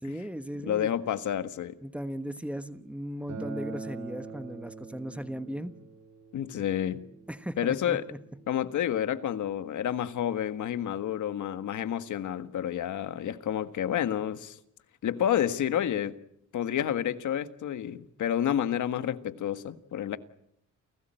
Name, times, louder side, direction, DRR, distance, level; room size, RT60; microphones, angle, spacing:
voice 1, 0.0-0.9 1.8-5.8 7.3-8.0, equal, 5° right, 1.2 m, -37 dB
voice 2, 0.7-1.8 6.3-7.1 7.6-8.0 8.5-14.6 15.0-16.2 16.5-20.2, left 10 dB, 70° left, 1.6 m, -29 dB
Acoustic guitar, 3.3-8.5, right 4 dB, 65° right, 7.7 m, -43 dB
29.5 x 18.0 x 9.1 m
cardioid pair, 130°, 31 cm